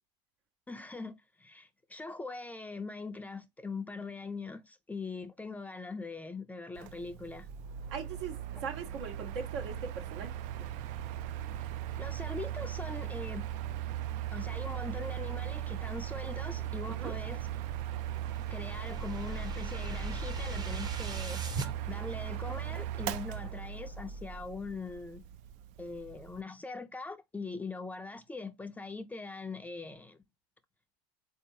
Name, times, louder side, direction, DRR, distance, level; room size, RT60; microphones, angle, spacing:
voice 1, 0.7-7.5 11.6-11.7 12.0-13.5 14.3-17.5 18.5-25.3 25.8-30.2, left 3 dB, 10° left, 0.4 m, -42 dB
Mechanical fan, 6.8-26.4, right 11 dB, 60° right, 0.4 m, -38 dB
voice 2, 7.9-10.3 10.6-10.7 17.0-17.1, right 6 dB, 80° right, 1.4 m, -40 dB
sound 1, 17.8-21.7, right 2 dB, 30° right, 0.8 m, -40 dB
3.6 x 2.7 x 2.7 m
hypercardioid pair, 90°, 15 cm